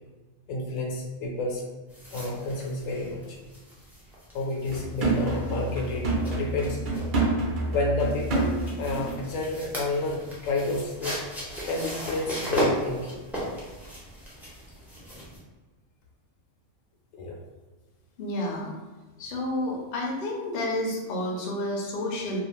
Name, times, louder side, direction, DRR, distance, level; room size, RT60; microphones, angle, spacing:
voice 1, 0.5-1.7 2.1-3.4 4.3-6.8 7.7-11.2 11.6-13.2 17.1-17.3, left 2 dB, 80° left, -1 dB, 1.0 m, -30 dB
sound 1, 1.9-15.4, equal, 5° right, 0.3 m, -36 dB
sound 2, 4.7-9.3 9.6-9.7, right 2 dB, 55° right, 0.6 m, -28 dB
voice 2, 18.2-18.7 19.2-22.4, left 1 dB, 60° left, -1 dB, 0.6 m, -30 dB
2.4 x 2.2 x 2.9 m, 1.2 s
omnidirectional pair, 1.4 m